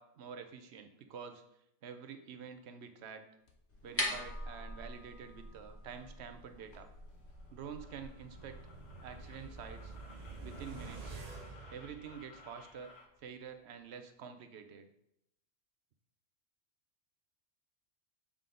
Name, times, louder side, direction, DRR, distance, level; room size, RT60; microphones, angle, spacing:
voice 1, 0.0-1.4 1.8-3.3 3.8-6.9 7.5-8.6 9.0-9.9 10.4-11.2 11.7-12.9 13.2-14.9, right 7 dB, 70° right, 8 dB, 0.9 m, -48 dB
sound 1, 3.5-3.7 6.1-6.2 6.6-6.8 7.1-13.1, left 3 dB, 90° left, 1.2 m, -59 dB
sound 2, 3.7-9.7, left 1 dB, 15° left, 0.6 m, -43 dB
sound 3, 7.5-12.7 13.0-13.1, right 3 dB, 40° right, 0.7 m, -49 dB
7.1 x 3.7 x 3.7 m, 0.79 s
omnidirectional pair, 1.2 m